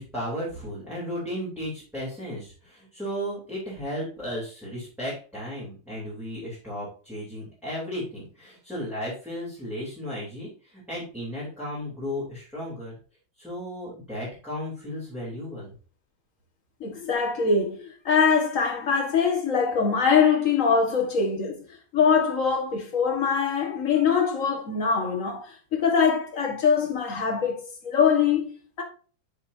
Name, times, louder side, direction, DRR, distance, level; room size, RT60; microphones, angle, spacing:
voice 1, 0.0-12.9 13.4-15.7, equal, ahead, 3.5 m, -34 dB
voice 2, 16.8-21.7 21.9-28.8, left 6 dB, 40° left, 2.0 m, -23 dB
7.5 x 7.3 x 2.8 m
omnidirectional pair, 2.2 m